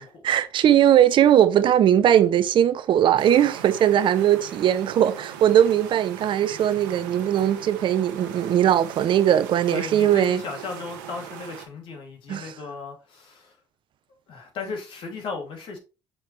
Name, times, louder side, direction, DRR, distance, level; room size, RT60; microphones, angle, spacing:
voice 1, 0.0-10.4 12.3-12.5, right 10 dB, 60° right, 0.7 m, -19 dB
sound 1, 3.2-11.7, right 8 dB, 90° right, 1.2 m, -40 dB
voice 2, 9.7-13.5 14.3-15.8, left 4 dB, 65° left, 2.8 m, -36 dB
6.2 x 5.6 x 3.3 m
hypercardioid pair, 65°, 10 cm